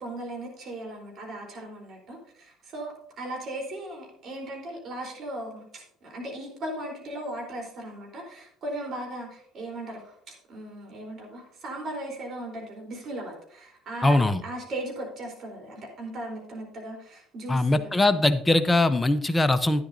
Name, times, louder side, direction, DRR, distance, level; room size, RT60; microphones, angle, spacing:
voice 1, 0.0-17.9, right 1 dB, 50° right, 1 dB, 3.8 m, -37 dB
voice 2, 14.0-14.4 17.5-19.9, left 2 dB, 15° left, 10 dB, 0.7 m, -21 dB
11.5 x 9.9 x 2.7 m, 0.65 s
supercardioid pair, 75°, 0 cm